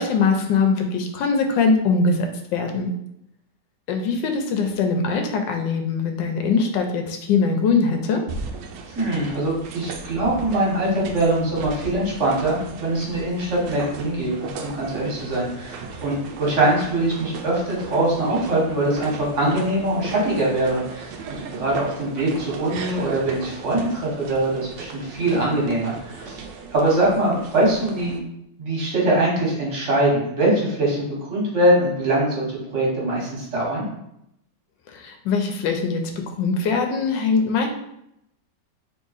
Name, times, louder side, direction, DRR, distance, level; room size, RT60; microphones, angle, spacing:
voice 1, 0.0-2.9 3.9-8.2 34.9-37.7, left 4 dB, 90° left, 4 dB, 1.3 m, -22 dB
sound 1, 8.3-28.2, right 5 dB, 85° right, 1.3 m, -37 dB
voice 2, 8.9-26.4 26.7-28.2 28.6-32.4 32.7-33.9, right 1 dB, 45° right, -3 dB, 1.6 m, -22 dB
3.7 x 3.3 x 3.9 m, 0.79 s
omnidirectional pair, 1.9 m